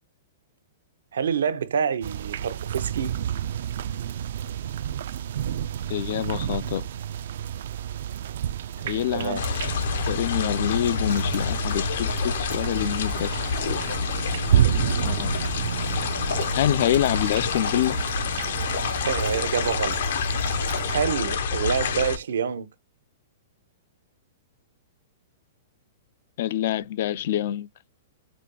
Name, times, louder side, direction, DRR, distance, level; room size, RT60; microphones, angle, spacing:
voice 1, 1.1-3.1 9.1-9.5 19.0-20.0 20.9-22.7, right 7 dB, 90° right, 0.7 m, -27 dB
sound 1, 2.0-21.0, right 10 dB, 65° right, 0.3 m, -30 dB
voice 2, 5.9-6.9 8.8-9.4 10.1-13.4 15.0-15.4 16.5-18.0 26.4-27.7, left 11 dB, 55° left, 0.3 m, -26 dB
sound 2, 9.4-22.2, left 5 dB, 70° left, 0.8 m, -28 dB
5.1 x 2.2 x 2.9 m
hypercardioid pair, 155°, 0 cm